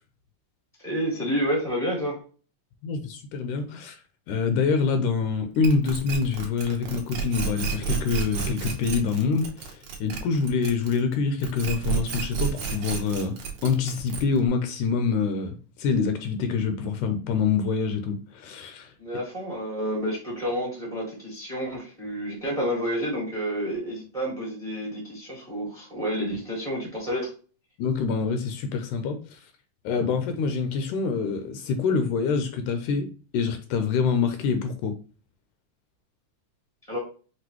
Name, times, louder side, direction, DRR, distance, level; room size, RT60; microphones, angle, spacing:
voice 1, 0.8-2.2 19.0-27.3 36.9-37.0, equal, 20° right, 0.8 m, -29 dB
voice 2, 2.8-4.0 4.3-13.4 13.6-18.9 27.8-29.4 29.8-35.0, left 5 dB, 80° left, 2.0 m, -26 dB
sound 1, 5.6-11.1 11.4-14.5, right 8 dB, 75° right, 1.3 m, -31 dB
6.0 x 2.6 x 2.9 m
omnidirectional pair, 3.7 m